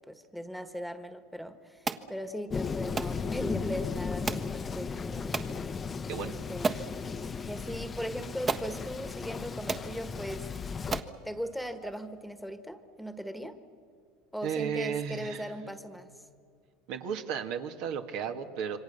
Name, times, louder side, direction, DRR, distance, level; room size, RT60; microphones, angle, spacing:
voice 1, 0.0-5.4 6.5-6.7 7.5-10.5 11.2-13.6 14.3-16.1, equal, ahead, 9 dB, 1.6 m, -39 dB
sound 1, 1.9-2.1 3.0-3.2 4.3-4.5 5.3-5.5 6.1-6.2 6.6-6.9 7.9-8.0 8.5-8.7 9.4-9.5 9.7-9.9 10.5-10.6 10.9-11.2, right 4 dB, 30° right, 1.4 m, -32 dB
Thunder, 2.5-11.0, left 5 dB, 25° left, 0.8 m, -36 dB
voice 2, 14.4-15.5 16.9-18.8, right 7 dB, 70° right, 5 dB, 2.0 m, -34 dB
27.5 x 24.5 x 6.9 m, 2.3 s
supercardioid pair, 95°, 0 cm